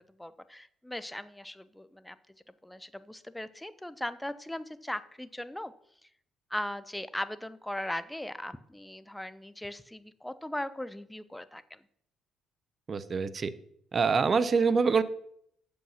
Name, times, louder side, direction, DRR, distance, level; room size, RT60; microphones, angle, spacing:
voice 1, 0.2-2.2 2.6-5.7 6.5-11.8, left 1 dB, 5° left, 14 dB, 0.7 m, -38 dB
voice 2, 12.9-13.5 13.9-15.0, right 5 dB, 40° right, 15 dB, 0.7 m, -25 dB
8.6 x 7.2 x 5.6 m, 0.69 s
supercardioid pair, 65°, 0 cm